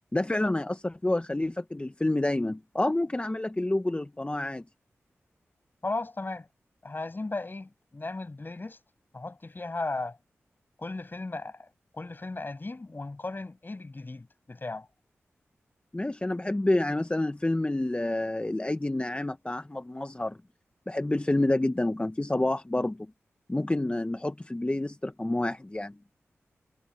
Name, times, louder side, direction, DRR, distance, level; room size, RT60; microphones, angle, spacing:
voice 1, 0.1-4.6 15.9-20.4 20.9-23.1 23.5-25.9, left 1 dB, 25° left, 1.0 m, -28 dB
voice 2, 5.8-6.5 6.8-8.8 9.1-10.2 10.8-11.7 11.9-14.9, left 2 dB, 40° left, 6.4 m, -36 dB
cardioid pair, 40°, 5 cm